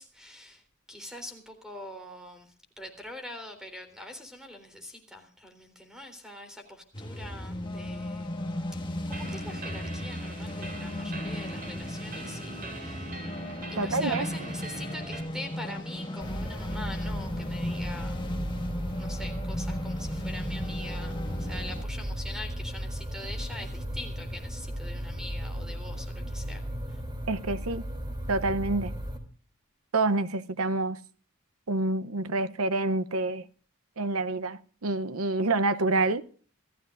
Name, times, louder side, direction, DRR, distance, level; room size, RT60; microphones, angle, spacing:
voice 1, 0.0-8.3 9.1-13.3 13.7-18.2 19.0-26.6 26.9-27.0, left 1 dB, 5° right, 3.6 m, -43 dB
sound 1, 6.9-21.8, left 1 dB, 20° left, 1.5 m, -36 dB
sound 2, 9.1-15.2, right 2 dB, 45° right, 5.5 m, -42 dB
voice 2, 13.8-14.2 27.3-27.9 28.3-28.9 29.9-31.0 31.7-33.5 34.0-36.2, right 2 dB, 80° right, 0.8 m, -27 dB
sound 3, 16.2-29.2, equal, 20° right, 3.2 m, -35 dB
26.5 x 14.5 x 2.5 m
head